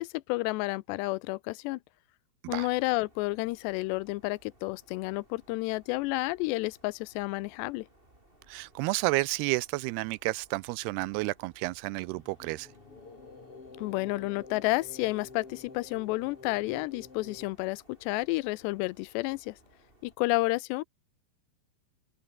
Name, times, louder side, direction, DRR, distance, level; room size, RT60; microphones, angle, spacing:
voice 1, 0.0-1.8 2.5-7.9 13.8-19.6 20.0-20.8, left 21 dB, 90° left, 2.8 m, -31 dB
sound 1, 2.6-20.2, right 1 dB, 10° right, 7.8 m, -62 dB
voice 2, 8.5-12.7, right 21 dB, 80° right, 2.4 m, -31 dB
sound 2, 12.1-17.5, left 4 dB, 35° left, 5.4 m, -49 dB
open air
omnidirectional pair, 4.8 m